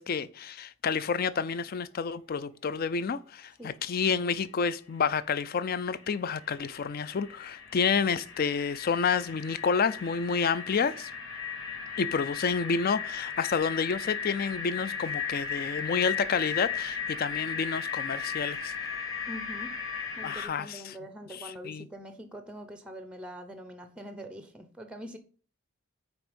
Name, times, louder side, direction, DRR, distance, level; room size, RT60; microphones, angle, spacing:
voice 1, 0.0-11.1 12.0-18.7 20.2-20.9 21.6-21.9, left 5 dB, 40° left, 0.3 m, -29 dB
sound 1, 5.5-5.6 5.8-20.5, left 6 dB, 60° left, 1.6 m, -36 dB
voice 2, 19.3-19.8 20.2-25.2, equal, 5° right, 0.5 m, -43 dB
6.0 x 4.4 x 5.1 m
head